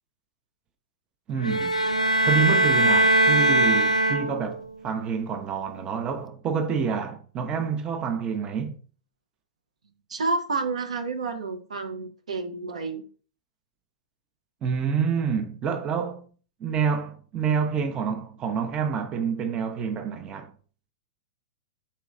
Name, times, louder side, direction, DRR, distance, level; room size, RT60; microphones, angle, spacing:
voice 1, 1.3-1.8 2.2-8.8 14.6-16.3 16.6-20.5, right 6 dB, 25° right, 0.6 m, -28 dB
sound 1, 1.4-4.6, right 1 dB, 85° left, 0.4 m, -21 dB
voice 2, 10.1-13.0, right 3 dB, 70° right, 0.6 m, -29 dB
4.2 x 3.1 x 3.6 m
figure-of-eight pair, 100°, 4 cm